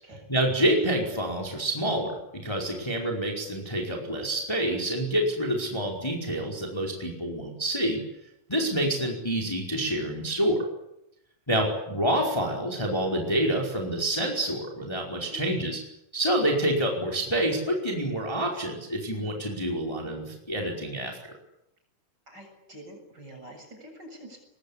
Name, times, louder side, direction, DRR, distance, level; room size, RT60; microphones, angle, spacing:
voice 1, 0.3-8.0 8.5-10.6 11.5-15.8 16.1-21.2, right 1 dB, 10° left, 0 dB, 4.4 m, -27 dB
voice 2, 22.3-24.4, equal, 30° right, 3 dB, 7.9 m, -46 dB
24.5 x 21.5 x 10.0 m, 0.84 s
omnidirectional pair, 3.7 m